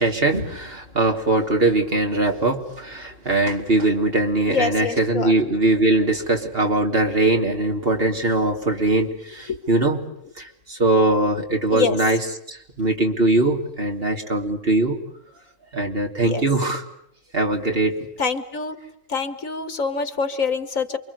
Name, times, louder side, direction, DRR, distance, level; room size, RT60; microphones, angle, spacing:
voice 1, 0.0-10.0 10.4-15.0 15.7-16.8 17.3-18.0, right 2 dB, 40° right, 3 dB, 3.3 m, -21 dB
voice 2, 4.5-5.3 9.5-9.6 11.7-12.0 16.2-16.4 18.2-18.8 19.1-21.0, left 5 dB, 65° left, 10 dB, 2.2 m, -25 dB
28.5 x 24.5 x 8.2 m, 0.70 s
omnidirectional pair, 1.5 m